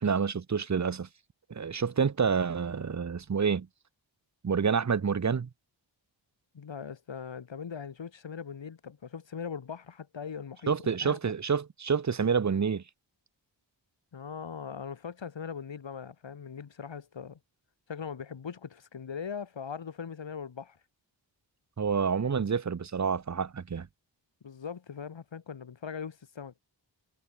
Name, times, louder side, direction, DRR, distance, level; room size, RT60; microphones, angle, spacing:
voice 1, 0.0-1.1 1.5-3.7 4.4-5.5 10.7-12.8 21.8-23.9, right 6 dB, 40° right, 1.0 m, -28 dB
voice 2, 6.5-11.3 14.1-17.4 17.9-20.8 24.4-26.5, left 6 dB, 75° left, 3.6 m, -40 dB
wide cardioid pair, 85°, 45 cm